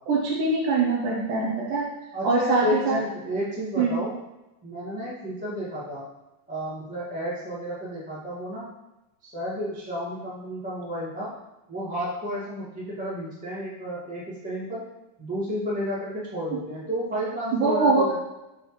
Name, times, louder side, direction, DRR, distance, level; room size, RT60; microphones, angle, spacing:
voice 1, 0.1-1.9 2.2-3.0 3.8-3.9 17.5-18.1, right 3 dB, 75° right, -1 dB, 2.0 m, -23 dB
voice 2, 2.1-4.1 4.6-6.0 6.5-8.7 9.2-11.3 11.7-14.8 15.2-18.2, equal, 5° right, -8 dB, 0.6 m, -31 dB
6.2 x 5.5 x 3.2 m, 0.98 s
omnidirectional pair, 4.3 m